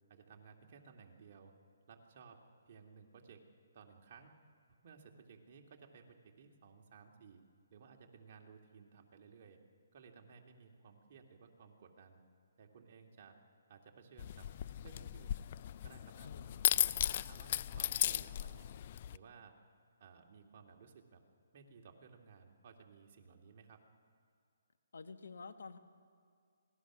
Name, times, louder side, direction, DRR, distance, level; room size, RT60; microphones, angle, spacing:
voice 1, 0.1-1.5 1.9-3.4 3.7-4.3 4.8-7.4 7.7-9.6 9.9-12.2 12.6-13.4 13.7-14.5 14.8-15.4 15.8-16.3 16.8-17.0 17.2-18.7 19.1-19.5 20.0-21.2 21.5-23.8, right 5 dB, 45° right, 2 dB, 2.3 m, -58 dB
sound 1, 14.2-19.2, left 11 dB, 40° left, 0.4 m, -36 dB
voice 2, 16.2-16.6 24.9-25.8, left 4 dB, 75° left, 9 dB, 1.4 m, -50 dB
26.5 x 19.0 x 6.1 m, 2.3 s
hypercardioid pair, 155°, 0 cm